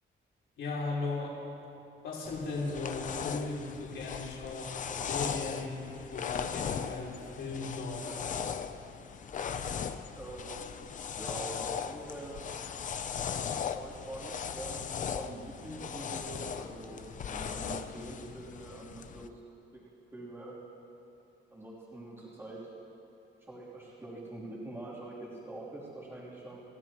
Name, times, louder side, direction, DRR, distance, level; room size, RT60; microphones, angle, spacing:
voice 1, 0.6-1.4 2.0-5.7 6.1-8.3, left 3 dB, 75° left, -6 dB, 4.0 m, -37 dB
sound 1, 2.3-19.3, left 7 dB, 40° left, 0.6 m, -38 dB
voice 2, 10.1-10.6 11.1-11.6 11.8-12.7 13.7-19.4 19.7-19.8 20.1-20.5 21.5-22.6 23.4-26.6, right 2 dB, 10° right, -8 dB, 3.3 m, -45 dB
29.5 x 16.0 x 3.1 m, 2.8 s
wide cardioid pair, 180°, 21 cm